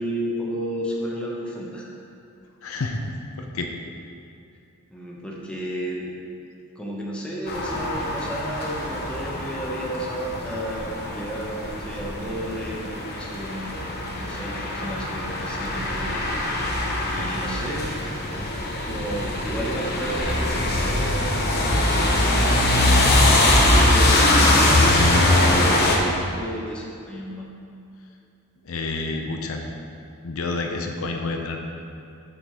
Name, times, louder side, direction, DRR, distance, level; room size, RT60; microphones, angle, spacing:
voice 1, 0.0-1.9 4.9-6.1 6.8-13.8 14.1-17.9 18.3-18.5 18.8-22.5 23.0-27.5, right 1 dB, 5° left, -4 dB, 0.9 m, -33 dB
voice 2, 2.6-3.0 3.4-3.7 28.7-29.6 30.2-31.6, left 3 dB, 70° left, 3 dB, 0.6 m, -29 dB
sound 1, 7.5-26.0, left 1 dB, 50° left, 1.0 m, -22 dB
6.1 x 5.1 x 5.7 m, 2.5 s
head